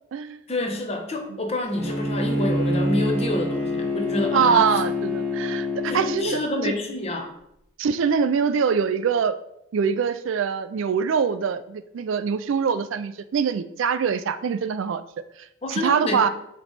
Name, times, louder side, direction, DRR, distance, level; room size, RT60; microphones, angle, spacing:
voice 1, 0.5-4.7 5.9-7.4 15.6-16.3, left 2 dB, 30° left, 3 dB, 0.8 m, -28 dB
Bowed string instrument, 1.8-6.3, left 2 dB, 10° left, 1.3 m, -26 dB
voice 2, 4.3-6.7 7.8-9.4 9.7-15.0 15.7-16.3, right 6 dB, 65° right, 13 dB, 0.3 m, -23 dB
7.6 x 3.0 x 4.1 m, 0.79 s
head